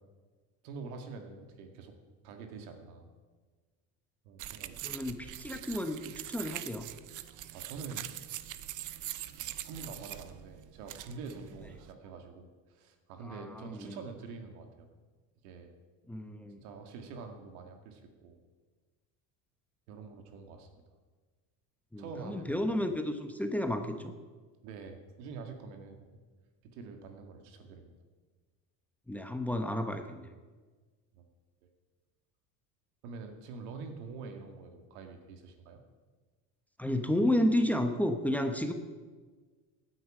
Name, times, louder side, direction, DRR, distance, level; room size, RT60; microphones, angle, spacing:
voice 1, 0.6-2.0 2.2-3.1 4.2-4.8 7.5-8.1 9.6-14.9 15.4-15.7 16.6-18.4 19.9-20.8 22.0-22.6 24.6-26.1 26.7-27.9 31.1-31.3 33.0-35.8, right 4 dB, 85° right, 4 dB, 2.1 m, -46 dB
sound 1, 4.4-11.9, right 13 dB, 45° right, 0.7 m, -43 dB
voice 2, 4.8-6.9 13.2-14.0 16.1-16.6 21.9-24.1 29.1-30.3 36.8-38.7, left 1 dB, 5° left, 6 dB, 1.0 m, -32 dB
17.0 x 9.8 x 5.0 m, 1.4 s
supercardioid pair, 115°, 42 cm